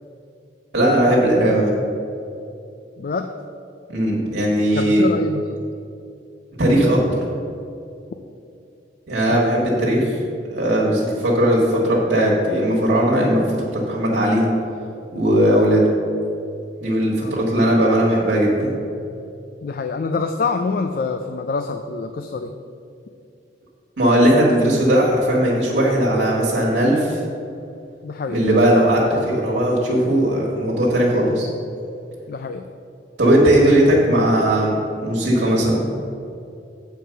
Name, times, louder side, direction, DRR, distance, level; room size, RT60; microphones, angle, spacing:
voice 1, 0.7-1.8 3.9-5.0 6.6-7.2 9.1-10.2 10.5-13.4 13.7-14.4 15.1-15.8 16.8-18.8 24.0-27.2 28.3-31.5 33.2-35.9, right 1 dB, 70° right, -4 dB, 1.6 m, -18 dB
voice 2, 3.0-3.3 4.7-5.6 9.3-9.4 17.2-17.3 19.6-22.5 28.0-28.4 28.7-28.8 32.3-32.6, left 4 dB, 55° left, 7 dB, 0.4 m, -26 dB
7.8 x 4.7 x 6.8 m, 2.6 s
head